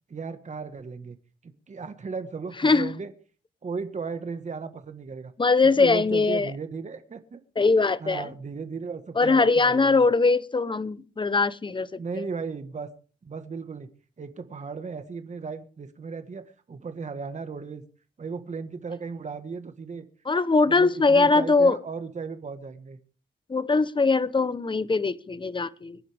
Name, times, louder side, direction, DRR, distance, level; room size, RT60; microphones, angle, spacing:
voice 1, 0.1-1.2 1.4-3.1 3.6-5.3 5.8-7.4 8.0-10.0 12.0-12.9 13.2-13.9 14.2-17.8 18.2-20.1 20.6-23.0, right 5 dB, 40° right, 1.6 m, -36 dB
voice 2, 5.4-6.5 7.6-8.3 9.2-11.9 12.2-12.3 20.2-21.8 23.5-26.0, left 3 dB, 25° left, 1.0 m, -21 dB
25.5 x 10.5 x 3.6 m
cardioid pair, 85°, 18 cm